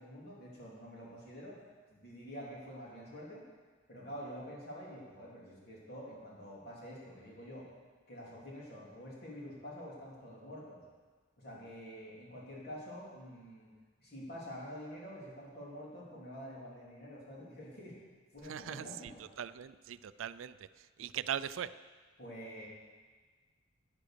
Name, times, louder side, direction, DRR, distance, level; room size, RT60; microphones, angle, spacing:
voice 1, 0.0-1.6 1.9-3.4 3.9-7.7 8.1-10.8 11.4-13.7 14.0-18.0 18.3-19.2 22.2-22.7, equal, 50° left, -5 dB, 3.3 m, -47 dB
voice 2, 18.4-19.1 19.4-21.7, right 9 dB, 75° right, 15 dB, 0.4 m, -40 dB
10.0 x 9.1 x 6.7 m, 1.5 s
head